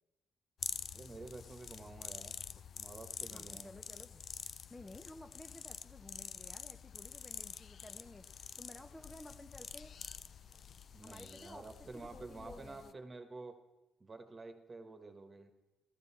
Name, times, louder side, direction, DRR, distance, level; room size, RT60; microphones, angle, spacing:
sound 1, 0.6-12.9, left 7 dB, 55° left, 0.4 m, -47 dB
voice 1, 0.9-2.3 2.8-3.8 10.9-13.5 14.0-15.5, right 3 dB, 30° right, 7 dB, 1.3 m, -50 dB
voice 2, 3.3-4.2 4.7-9.9 11.0-11.7 11.9-12.9, left 1 dB, 15° left, 7 dB, 0.6 m, -54 dB
14.5 x 13.5 x 4.3 m, 1.1 s
cardioid pair, 90°, 0 cm